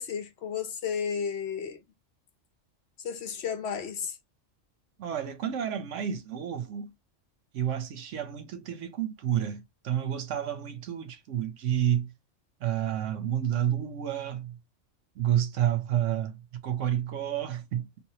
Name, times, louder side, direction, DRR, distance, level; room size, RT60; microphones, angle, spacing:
voice 1, 0.0-1.8 3.0-4.2, left 7 dB, 65° left, 0.9 m, -33 dB
voice 2, 5.0-6.9 7.5-12.1 12.6-14.6 15.2-18.0, right 10 dB, 80° right, 1.0 m, -30 dB
3.4 x 2.5 x 2.8 m
omnidirectional pair, 1.3 m